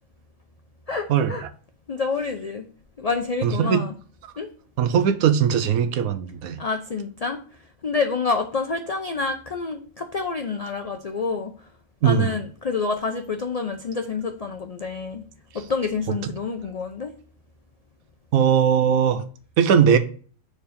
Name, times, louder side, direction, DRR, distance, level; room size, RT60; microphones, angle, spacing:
voice 1, 0.9-1.5 1.9-2.7 3.0-3.9 4.4-4.5 6.6-7.4 7.8-11.5 12.0-15.2 15.5-17.1, left 4 dB, 55° left, 0.4 m, -28 dB
voice 2, 3.4-3.8 4.8-6.6 12.0-12.3 18.3-19.2 19.6-20.0, right 8 dB, 85° right, 1.1 m, -19 dB
4.7 x 4.5 x 5.1 m
omnidirectional pair, 1.4 m